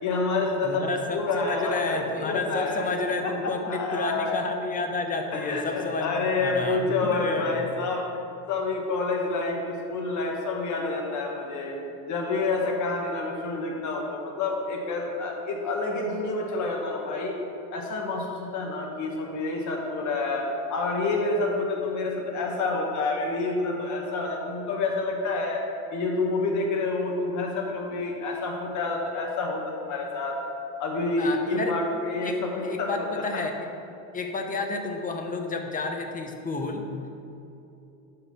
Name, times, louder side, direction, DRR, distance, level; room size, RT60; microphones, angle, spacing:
voice 1, 0.0-4.4 5.3-8.0 8.5-11.8 12.1-17.4 17.7-25.6 25.9-30.4 30.8-32.9 33.1-33.4, left 3 dB, 45° left, 0 dB, 1.5 m, -28 dB
voice 2, 0.6-7.7 31.2-31.7 32.2-32.4 32.6-33.5 34.1-36.8, left 3 dB, 20° left, 4 dB, 0.7 m, -31 dB
5.6 x 5.4 x 6.1 m, 2.8 s
supercardioid pair, 120°, 40 cm